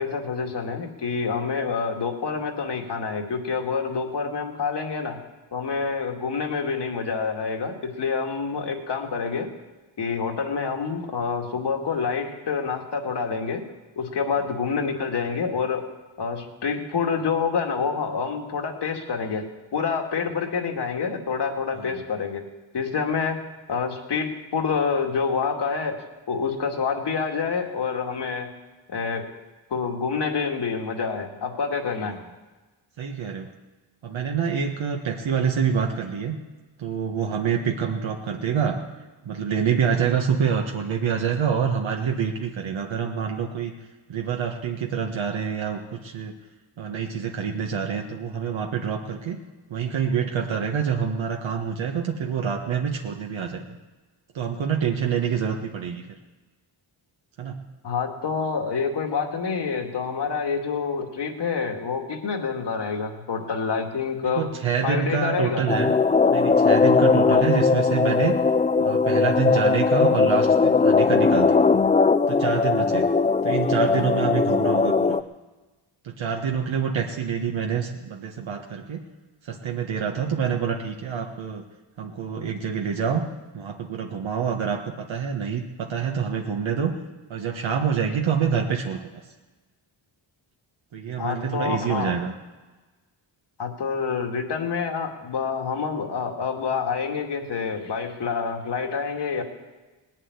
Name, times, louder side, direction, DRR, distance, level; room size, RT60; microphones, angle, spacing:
voice 1, 0.0-5.2 5.5-9.5 10.0-13.6 14.0-15.9 16.2-22.4 22.7-23.4 23.7-28.5 28.9-29.3 29.7-32.2 57.8-64.5 64.8-65.7 67.3-67.4 91.2-92.2 93.6-99.4, left 5 dB, 60° left, 3 dB, 2.3 m, -27 dB
voice 2, 33.0-33.5 34.0-36.4 36.8-38.8 39.2-43.7 44.1-46.3 46.8-49.4 49.7-53.6 54.3-56.0 57.4-57.6 64.2-65.9 66.2-68.4 68.8-71.6 72.3-73.1 73.4-75.2 76.0-79.0 79.4-81.6 82.0-83.2 83.5-86.9 87.3-89.2 90.9-92.3, right 7 dB, 75° right, 1 dB, 1.5 m, -26 dB
sound 1, 65.7-75.2, left 4 dB, 15° left, 0.4 m, -19 dB
19.0 x 7.5 x 9.6 m, 1.2 s
cardioid pair, 105°, 47 cm